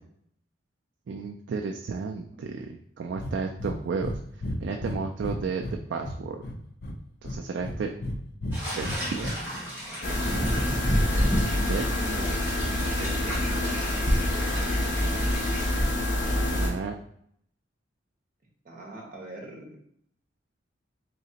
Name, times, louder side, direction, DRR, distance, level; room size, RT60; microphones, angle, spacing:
voice 1, 1.1-4.2 4.6-6.4 7.2-7.9 8.8-9.3 11.7-11.8 16.5-16.9, right 5 dB, 65° right, 3 dB, 0.3 m, -32 dB
Breathing, 3.2-3.3 3.6-4.2 4.4-5.8 6.0-6.9 7.2-8.2 8.4-9.3, left 1 dB, 55° left, 0.5 m, -33 dB
sound 1, 8.5-15.8, equal, 10° right, 1.5 m, -32 dB
sound 2, 10.0-16.7, left 1 dB, 70° left, 0.9 m, -26 dB
voice 2, 11.9-12.3 12.6-14.3 18.6-19.8, right 1 dB, 45° right, -1 dB, 1.1 m, -42 dB
3.9 x 3.2 x 2.8 m, 0.68 s
head